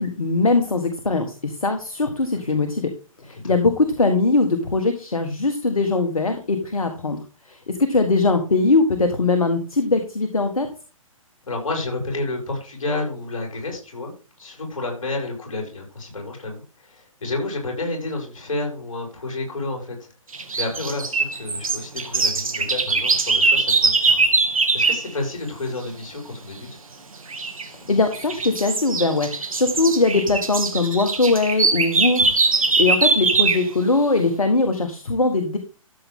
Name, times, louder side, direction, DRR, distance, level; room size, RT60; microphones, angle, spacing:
voice 1, 0.0-2.9 3.2-7.2 7.5-10.7 27.7-35.6, left 3 dB, 80° left, 6 dB, 1.7 m, -21 dB
voice 2, 11.5-14.1 14.4-20.1 20.6-24.2 24.7-26.8 32.7-32.8, left 2 dB, 65° left, 1 dB, 6.3 m, -30 dB
sound 1, 20.3-25.1 27.3-27.7 28.1-33.7, right 4 dB, 75° right, 2.3 m, -21 dB
13.5 x 7.7 x 3.8 m, 0.35 s
figure-of-eight pair, 125°, 18 cm